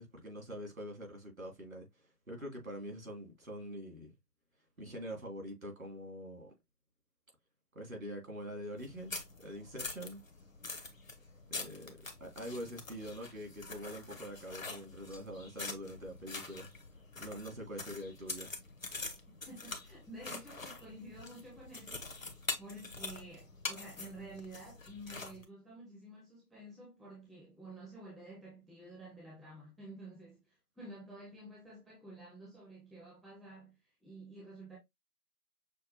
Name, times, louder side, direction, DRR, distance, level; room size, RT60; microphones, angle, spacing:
voice 1, 0.0-1.9 2.3-4.1 4.8-6.5 7.7-10.2 11.5-16.7 17.2-18.5, equal, 60° right, 2.4 m, -44 dB
sound 1, 8.8-25.4, left 3 dB, 55° left, 0.9 m, -45 dB
voice 2, 19.5-22.3 22.6-33.7 34.0-34.8, right 1 dB, ahead, 0.7 m, -51 dB
6.4 x 2.5 x 2.7 m
figure-of-eight pair, 175°, 47 cm